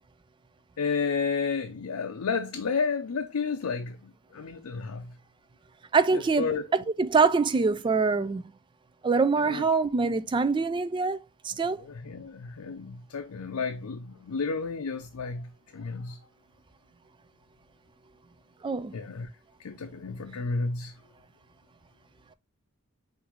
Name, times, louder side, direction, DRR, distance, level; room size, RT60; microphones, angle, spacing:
voice 1, 0.8-4.0 4.3-5.1 6.1-6.6 9.4-9.6 11.5-15.5 15.7-16.2 18.9-19.3 19.6-20.9, left 5 dB, 80° left, 0.5 m, -31 dB
voice 2, 5.9-8.4 9.0-11.2 11.4-11.8 18.6-18.9, right 4 dB, 20° right, 0.3 m, -24 dB
6.0 x 2.6 x 2.9 m
head